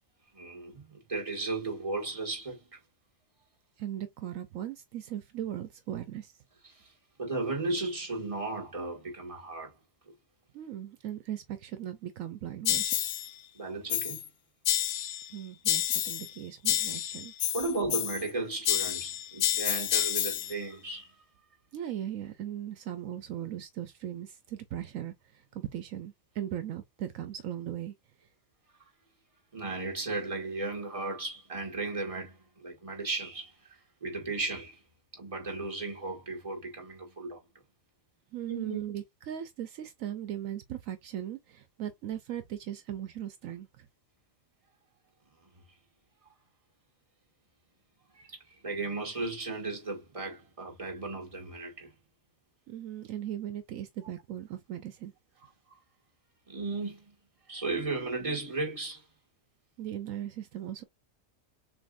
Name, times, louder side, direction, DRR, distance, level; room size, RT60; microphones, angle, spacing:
voice 1, 0.3-2.6 6.7-6.9 7.2-9.7 13.5-14.3 17.5-21.1 29.5-34.8 35.1-37.4 38.5-38.8 48.1-51.9 56.5-57.1 57.5-59.1, right 3 dB, 25° right, 1.9 m, -35 dB
voice 2, 3.8-6.4 10.5-13.0 15.3-17.3 21.7-27.9 28.2-28.3 38.3-43.9 52.7-55.1 59.8-60.8, right 11 dB, 75° right, 1.0 m, -38 dB
sound 1, 12.7-13.3 13.9-14.3 14.7-15.3 15.7-16.3 16.7-18.3 18.7-20.6, left 12 dB, 75° left, 0.9 m, -29 dB
6.9 x 2.7 x 2.5 m
omnidirectional pair, 1.4 m